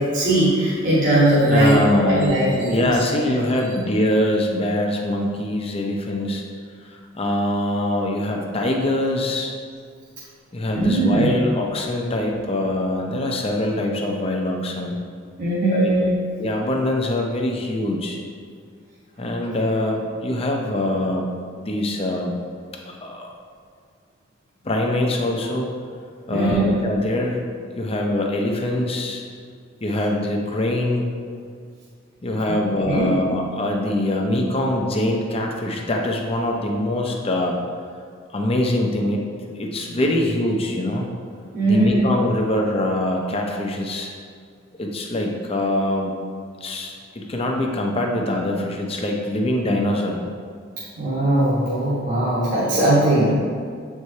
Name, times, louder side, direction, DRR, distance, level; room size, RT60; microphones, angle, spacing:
voice 1, 0.0-2.9 10.7-11.3 15.4-16.1 26.3-26.7 32.5-32.6 32.8-33.1 41.5-42.0 51.0-53.4, right 1 dB, 45° right, -9 dB, 1.3 m, -19 dB
voice 2, 1.4-6.4 6.9-9.5 10.5-15.0 15.7-15.9 16.4-18.2 19.2-21.3 21.6-22.4 22.9-23.3 24.6-25.7 26.3-29.2 29.8-31.1 32.2-37.6 38.3-41.0 41.6-44.1 44.8-46.1 46.6-50.2 53.2-53.4, left 1 dB, 30° left, 1 dB, 0.7 m, -23 dB
7.5 x 4.7 x 2.8 m, 2.1 s
head